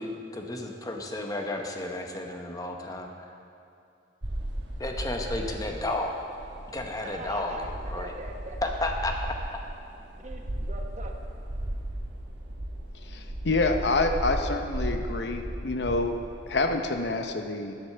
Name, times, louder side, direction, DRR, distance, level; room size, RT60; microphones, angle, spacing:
voice 1, 0.0-3.1 4.8-6.2 6.7-8.1 8.6-9.1, left 2 dB, 20° left, 2 dB, 0.9 m, -32 dB
sound 1, 4.2-17.2, right 1 dB, 70° right, 1.3 m, -36 dB
voice 2, 7.0-8.6 10.2-11.1, right 2 dB, 40° right, 2 dB, 1.0 m, -42 dB
voice 3, 13.0-16.2 16.5-17.7, left 3 dB, 65° left, 6 dB, 0.7 m, -27 dB
9.6 x 8.1 x 6.7 m, 2.6 s
head